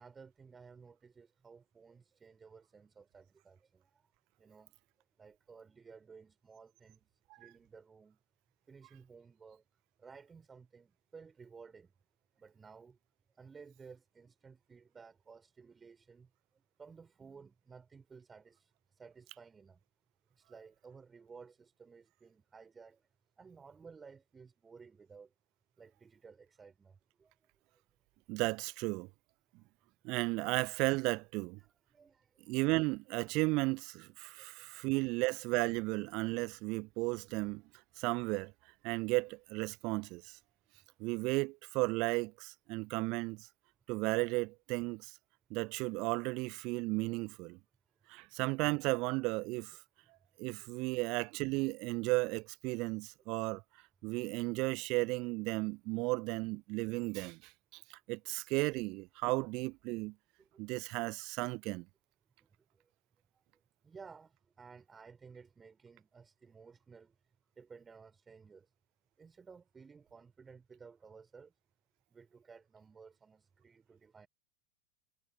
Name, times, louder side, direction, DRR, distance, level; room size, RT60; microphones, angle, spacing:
voice 1, 0.0-4.1 4.4-4.7 5.2-7.1 7.4-8.2 8.7-9.6 10.0-11.9 12.4-13.0 13.3-19.8 20.3-23.1 23.4-25.3 25.8-27.5 31.6-32.5 34.3-34.7 60.4-60.6 62.4-62.9 63.3-63.4 63.8-67.2 67.6-68.7 69.2-71.5 72.1-74.3, right 5 dB, 15° right, 6.2 m, -56 dB
voice 2, 28.3-29.1 30.0-31.6 32.5-37.6 38.0-38.5 38.8-40.4 41.0-43.5 43.9-45.1 45.5-47.6 48.1-49.8 50.4-53.6 54.0-60.1 60.6-61.9, right 25 dB, 40° right, 1.1 m, -34 dB
figure-of-eight pair, 90°, 0 cm